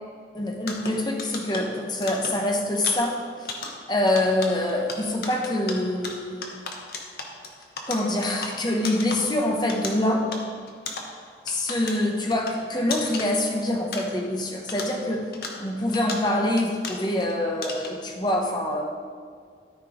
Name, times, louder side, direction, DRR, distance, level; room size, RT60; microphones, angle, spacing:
voice 1, 0.3-3.5 3.9-6.5 7.9-10.3 11.5-15.2 15.6-18.8, left 1 dB, 25° left, 1 dB, 1.0 m, -25 dB
Mining with Pick Axe in a group, 0.6-14.4 14.7-17.3 17.6-18.1, left 3 dB, 60° left, 1.1 m, -37 dB
13.0 x 4.6 x 4.9 m, 2.1 s
head